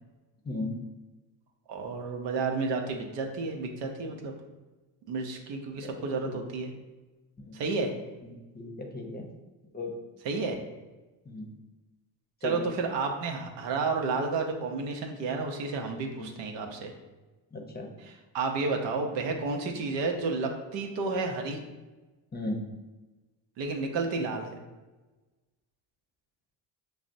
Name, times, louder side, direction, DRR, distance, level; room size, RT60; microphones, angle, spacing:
voice 1, 1.7-4.3 5.1-6.7 7.5-7.9 10.2-10.6 12.4-16.9 18.0-21.6 23.6-24.5, right 4 dB, 75° right, 3 dB, 0.7 m, -31 dB
voice 2, 8.5-9.3 9.7-9.9 11.3-11.5 12.4-12.6 16.1-16.3 17.5-17.9 22.3-22.6, left 2 dB, 25° left, 2 dB, 0.7 m, -36 dB
6.0 x 2.0 x 2.6 m, 1.2 s
supercardioid pair, 75°, 44 cm